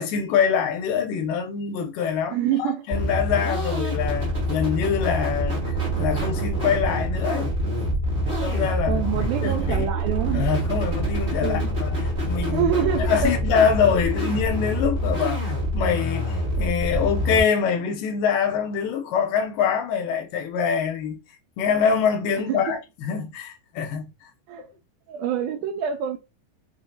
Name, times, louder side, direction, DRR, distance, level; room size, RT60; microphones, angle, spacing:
voice 1, 0.0-7.5 8.4-9.0 9.4-9.9 10.3-21.2 21.6-24.3, left 7 dB, 90° left, 2.3 m, -25 dB
voice 2, 2.3-2.8 8.9-10.5 11.4-11.8 12.5-13.4 22.5-22.7 24.5-24.6 25.1-26.2, right 8 dB, 80° right, 1.9 m, -26 dB
sound 1, 2.9-17.4, equal, 35° right, 0.8 m, -26 dB
5.4 x 2.1 x 2.7 m
omnidirectional pair, 3.9 m